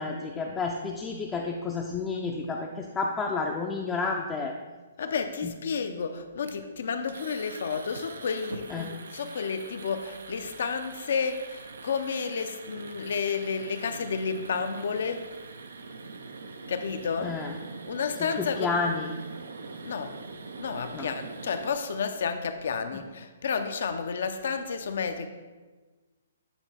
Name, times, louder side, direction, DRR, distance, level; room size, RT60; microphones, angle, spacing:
voice 1, 0.0-4.5 5.4-5.5 8.7-8.9 17.2-17.5 18.2-19.1 20.9-21.1 22.9-23.0, left 4 dB, 15° left, -1 dB, 0.4 m, -31 dB
voice 2, 5.0-15.3 16.7-17.4 17.9-18.7 19.8-20.2 20.6-25.3, left 5 dB, 65° left, 8 dB, 0.6 m, -31 dB
sound 1, 5.0-5.3 6.4-6.7 7.0-21.7, right 4 dB, 80° right, 0.5 m, -43 dB
8.1 x 2.9 x 4.2 m, 1.3 s
hypercardioid pair, 145°, 0 cm